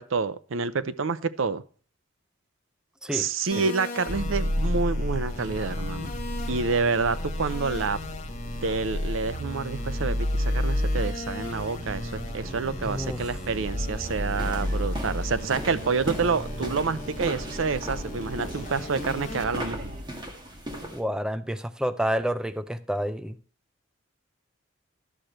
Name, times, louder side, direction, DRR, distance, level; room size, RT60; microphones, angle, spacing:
voice 1, 0.0-1.6 3.1-6.1 6.5-8.0 8.6-20.0, right 4 dB, 80° right, 0.6 m, -28 dB
sound 1, 3.5-19.4, left 2 dB, 35° left, 1.7 m, -40 dB
sound 2, 4.1-20.0, equal, 40° right, 1.2 m, -32 dB
voice 2, 12.9-13.2 20.9-23.4, equal, 5° right, 0.4 m, -29 dB
sound 3, 14.0-21.0, right 1 dB, 25° right, 1.8 m, -38 dB
12.0 x 6.5 x 4.4 m
head